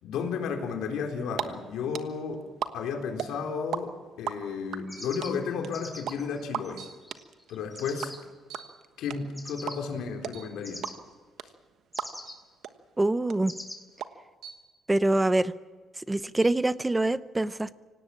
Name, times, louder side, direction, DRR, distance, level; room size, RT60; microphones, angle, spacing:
voice 1, 0.0-2.4 2.7-6.8 7.5-8.2 9.0-10.9, left 6 dB, 80° left, 2 dB, 4.2 m, -33 dB
sound 1, 1.0-1.4 1.7-3.8 4.1-12.4 12.6-12.7 13.0-14.1, right 10 dB, 65° right, 1.3 m, -35 dB
sound 2, 3.2-3.5 5.0-5.3 6.1-6.2 6.8-7.1 8.5-8.9 10.3-10.7 12.2-12.5 14.4-14.8 16.4-16.7, right 6 dB, 85° right, 4.1 m, -50 dB
sound 3, 4.9-8.2 9.3-9.8 10.6-10.9 11.9-12.3 13.5-13.8, left 1 dB, 5° left, 3.1 m, -43 dB
voice 2, 13.0-13.5 14.9-15.5 16.0-17.7, right 2 dB, 10° right, 15 dB, 0.7 m, -25 dB
25.0 x 18.0 x 7.4 m, 1.4 s
cardioid pair, 140°, 0 cm